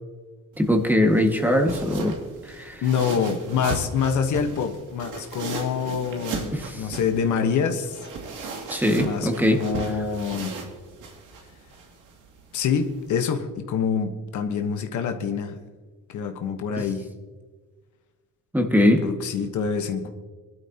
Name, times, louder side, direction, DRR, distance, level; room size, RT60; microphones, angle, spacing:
sound 1, 0.5-13.2, right 4 dB, 90° right, 2.5 m, -37 dB
voice 1, 0.6-2.2 2.5-2.8 6.5-6.8 8.7-9.6 18.5-19.0, left 1 dB, 5° right, 3 dB, 1.9 m, -21 dB
voice 2, 2.8-8.0 9.0-10.6 12.5-15.6 16.1-17.0 19.0-20.1, left 6 dB, 75° left, 6 dB, 1.3 m, -26 dB
23.5 x 12.0 x 2.9 m, 1.4 s
cardioid pair, 90°, 30 cm